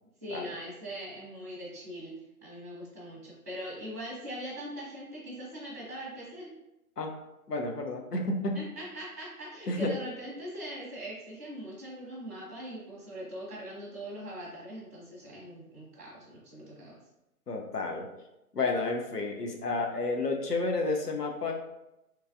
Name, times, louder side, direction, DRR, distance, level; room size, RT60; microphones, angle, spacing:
voice 1, 0.2-2.1 2.4-6.5 8.5-16.9, equal, 15° right, -13 dB, 0.6 m, -41 dB
voice 2, 7.5-8.6 9.7-10.0 17.5-18.1 18.5-21.5, left 3 dB, 85° left, 2 dB, 0.8 m, -31 dB
3.4 x 3.1 x 2.5 m, 0.91 s
figure-of-eight pair, 140°, 46 cm